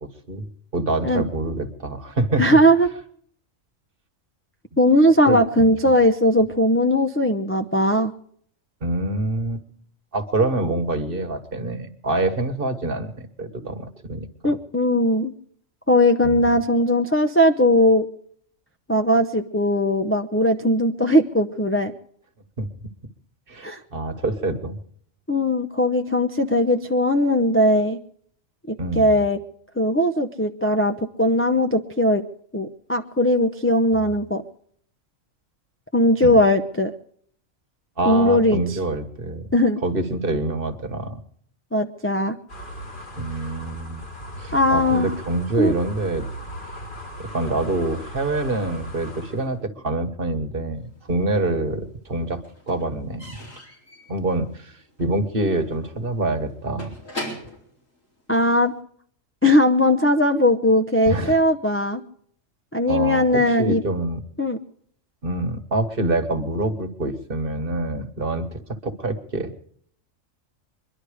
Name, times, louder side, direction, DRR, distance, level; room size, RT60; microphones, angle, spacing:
voice 1, 0.0-0.4 0.7-2.4 5.3-5.7 8.8-9.6 10.1-14.3 16.2-16.5 22.6-22.7 23.5-24.8 28.8-29.2 36.2-36.4 38.0-39.4 39.8-41.2 43.2-44.0 44.4-46.2 47.2-53.3 54.1-54.7 55.0-56.9 61.0-61.4 62.8-64.2 65.2-69.6, right 2 dB, 45° right, 7 dB, 1.5 m, -26 dB
voice 2, 2.4-2.9 4.8-8.1 14.4-15.3 15.9-18.1 18.9-21.9 23.6-23.8 25.3-28.0 28.7-29.4 29.8-32.2 32.5-34.4 35.9-36.9 38.1-38.6 39.5-39.8 41.7-42.4 44.5-45.1 45.6-45.7 58.3-58.7 59.4-62.0 62.7-63.8 64.4-64.6, left 1 dB, 15° left, 6 dB, 0.5 m, -19 dB
sound 1, 42.5-49.5, equal, 40° left, 2.1 m, -37 dB
Slam / Squeak / Wood, 50.9-51.8 52.0-58.8, left 1 dB, 75° left, 4.6 m, -40 dB
23.0 x 11.5 x 4.9 m, 0.62 s
omnidirectional pair, 1.4 m